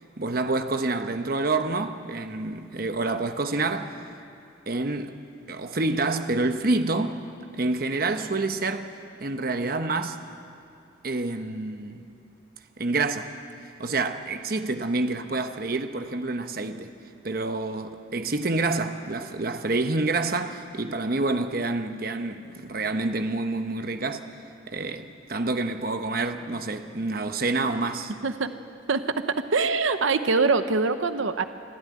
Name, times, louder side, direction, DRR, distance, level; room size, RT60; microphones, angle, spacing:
voice 1, 0.2-4.0 4.7-5.2 5.5-7.2 7.5-8.9 9.2-10.2 11.0-12.0 12.8-13.3 13.8-16.9 17.2-24.3 24.7-28.1, right 3 dB, 50° right, 1.0 m, -28 dB
voice 2, 29.5-31.5, right 4 dB, 85° right, 0.8 m, -23 dB
25.0 x 13.5 x 9.5 m
head